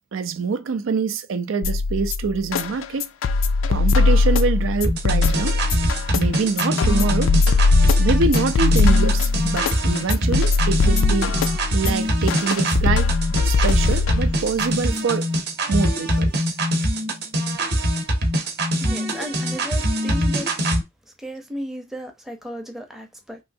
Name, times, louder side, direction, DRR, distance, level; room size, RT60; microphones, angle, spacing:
voice 1, 0.1-3.0 3.7-5.6 6.1-7.3 8.0-11.3 11.7-13.1 13.4-15.3 15.7-16.3, right 4 dB, 80° right, 0.4 m, -25 dB
sound 1, 1.6-14.6, left 3 dB, 85° left, 0.4 m, -20 dB
sound 2, 4.8-20.8, equal, 55° right, 0.8 m, -23 dB
voice 2, 18.8-20.5 21.2-23.4, equal, ahead, 0.6 m, -34 dB
3.1 x 2.6 x 2.6 m
head